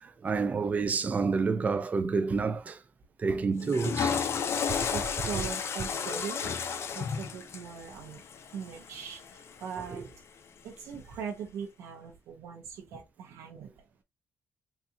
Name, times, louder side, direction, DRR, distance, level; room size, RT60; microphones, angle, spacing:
voice 1, 0.0-2.8 3.2-4.4 5.3-5.4 9.8-10.0, right 4 dB, 30° right, 0.4 m, -29 dB
Water / Toilet flush, 3.6-9.8, left 6 dB, 55° left, 0.5 m, -33 dB
voice 2, 4.9-6.5 6.9-8.2 8.5-10.1 10.6-13.7, right 7 dB, 90° right, 0.8 m, -40 dB
4.1 x 2.3 x 2.7 m
cardioid pair, 105°, 5 cm